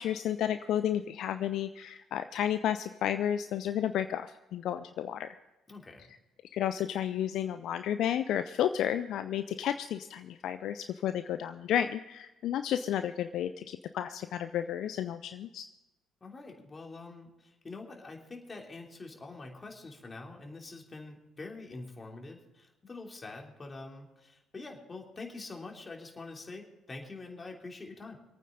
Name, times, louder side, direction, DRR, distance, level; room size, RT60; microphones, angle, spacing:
voice 1, 0.0-5.3 6.5-15.6, left 10 dB, 65° left, 11 dB, 0.5 m, -32 dB
voice 2, 5.7-6.1 16.2-28.2, left 3 dB, 30° left, 1 dB, 3.2 m, -45 dB
25.5 x 9.2 x 3.9 m, 1.0 s
hypercardioid pair, 50°, 0 cm